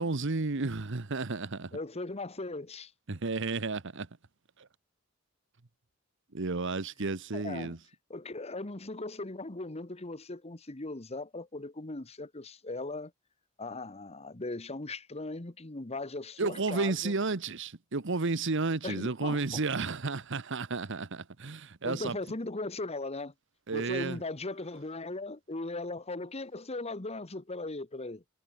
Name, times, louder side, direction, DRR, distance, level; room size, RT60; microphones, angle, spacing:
voice 1, 0.0-1.8 3.1-4.1 4.6-4.7 6.3-7.8 16.4-22.2 23.7-24.2, right 3 dB, 65° right, 1.1 m, -32 dB
voice 2, 1.7-2.9 7.3-7.8 8.1-13.1 13.6-17.1 18.8-19.6 21.8-23.3 23.7-28.2, left 2 dB, 30° left, 1.3 m, -38 dB
head